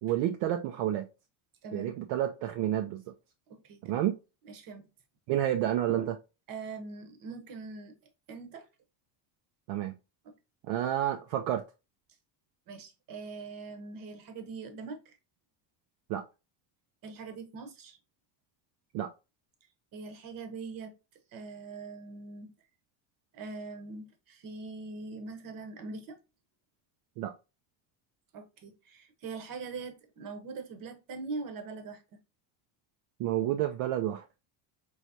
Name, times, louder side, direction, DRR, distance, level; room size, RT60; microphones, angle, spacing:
voice 1, 0.0-1.1 1.7-3.0 3.8-4.2 5.3-6.2 9.7-9.9 10.6-11.6 16.1-16.2 18.9-19.1 27.2-27.3 33.2-34.2, right 12 dB, 70° right, 0.6 m, -30 dB
voice 2, 1.6-2.0 3.5-4.0 4.4-4.9 6.5-8.0 8.3-8.7 10.2-10.3 12.7-15.2 17.0-18.0 19.9-20.9 21.3-22.5 23.3-26.2 28.3-32.0, right 4 dB, 45° right, 1.0 m, -42 dB
4.8 x 3.1 x 2.7 m
cardioid pair, 155°, 47 cm